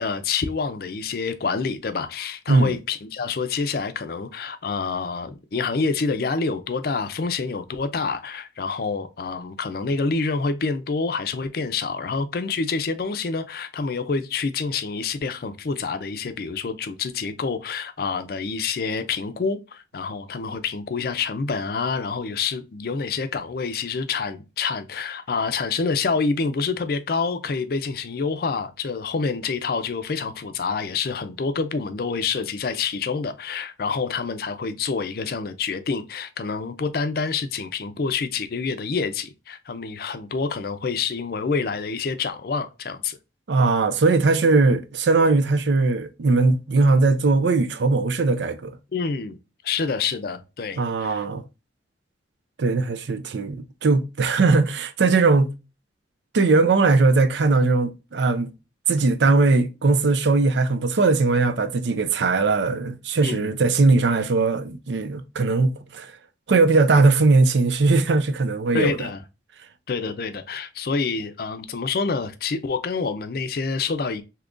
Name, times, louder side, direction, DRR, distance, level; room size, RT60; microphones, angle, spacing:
voice 1, 0.0-43.2 48.9-49.4 49.6-51.2 63.2-63.5 68.7-69.2 69.9-74.2, left 4 dB, 55° left, 0.4 m, -27 dB
voice 2, 43.5-48.8 50.8-51.4 52.6-55.5 56.3-58.5 58.9-66.1 66.5-69.1, right 3 dB, 75° right, 0.5 m, -19 dB
3.6 x 2.8 x 2.4 m
head